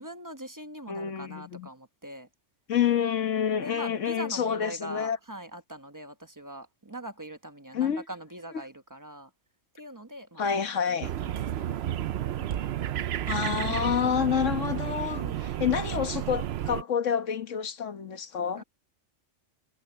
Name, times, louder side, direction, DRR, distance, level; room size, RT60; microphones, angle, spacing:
voice 1, 0.0-2.3 3.6-9.3 9.7-10.5 10.9-12.5 15.1-15.5 18.6-18.7, right 1 dB, 15° right, 1.0 m, -42 dB
voice 2, 0.9-1.7 2.7-5.2 7.7-8.0 10.4-11.1 13.3-18.6, left 8 dB, 75° left, 1.5 m, -28 dB
sound 1, 11.0-16.8, right 11 dB, 65° right, 0.8 m, -31 dB
omnidirectional pair, 1.3 m